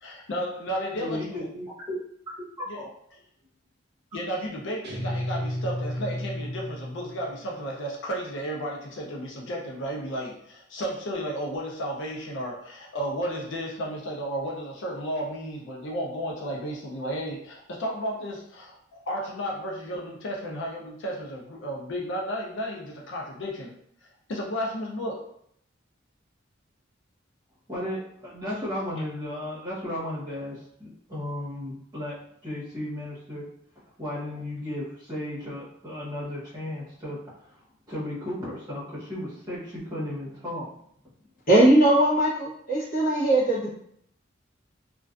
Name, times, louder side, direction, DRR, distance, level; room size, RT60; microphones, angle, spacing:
voice 1, 0.0-1.5 2.7-2.8 4.1-23.7 24.3-25.2, equal, 65° left, -2 dB, 0.5 m, -33 dB
voice 2, 0.9-2.0 2.7-2.9 27.7-32.2 32.4-33.5 34.0-37.2 37.5-37.6 37.9-40.7, left 1 dB, 20° right, -9 dB, 0.9 m, -34 dB
Guitar, 4.8-7.4, left 1 dB, 55° right, 0.5 m, -32 dB
voice 3, 41.5-43.7, right 1 dB, 45° left, -6 dB, 0.9 m, -20 dB
2.4 x 2.2 x 2.4 m, 0.70 s
head